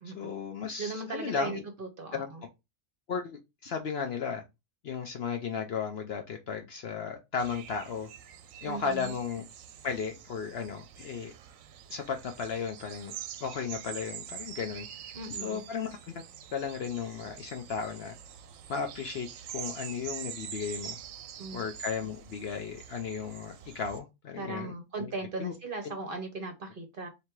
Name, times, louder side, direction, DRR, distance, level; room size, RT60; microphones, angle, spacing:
voice 1, 0.1-1.6 2.1-2.3 3.1-4.4 4.8-8.1 8.6-9.4 9.8-11.3 11.9-14.9 15.4-16.2 16.5-18.1 18.7-19.3 19.5-21.0 21.5-25.1 25.4-25.5 25.8-25.9, left 6 dB, 60° left, 0.7 m, -35 dB
voice 2, 0.8-2.4 8.6-9.1 15.1-15.6 21.4-21.7 24.4-27.1, right 3 dB, 45° right, 0.8 m, -38 dB
sound 1, 7.4-24.0, right 9 dB, 75° right, 0.9 m, -45 dB
3.4 x 2.9 x 4.5 m
omnidirectional pair, 1.4 m